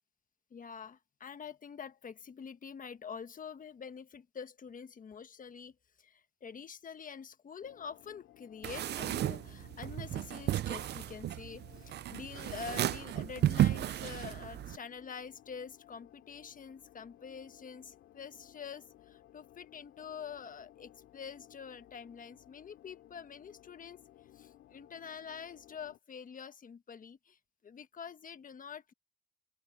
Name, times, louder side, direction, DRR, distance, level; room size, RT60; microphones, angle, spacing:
voice 1, 0.5-24.0 24.3-27.4 27.6-28.9, left 6 dB, 45° left, 1.3 m, -46 dB
sound 1, 7.6-26.0, left 13 dB, 80° left, 2.9 m, -59 dB
sound 2, 8.6-14.8, right 12 dB, 60° right, 0.4 m, -33 dB
open air
cardioid pair, 90°, 20 cm